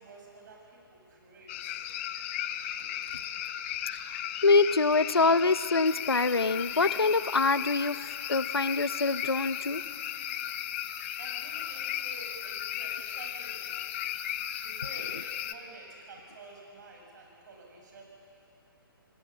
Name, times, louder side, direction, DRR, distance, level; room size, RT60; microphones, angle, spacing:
voice 1, 0.0-1.8 2.8-3.0 11.2-13.9 14.6-18.0, right 3 dB, 50° right, 0 dB, 7.3 m, -50 dB
sound 1, 1.5-15.5, left 11 dB, 35° left, 0.9 m, -36 dB
voice 2, 4.4-8.0 8.3-9.8, left 3 dB, 90° left, 14 dB, 0.8 m, -25 dB
26.5 x 19.0 x 8.8 m, 2.8 s
figure-of-eight pair, 135°, 12 cm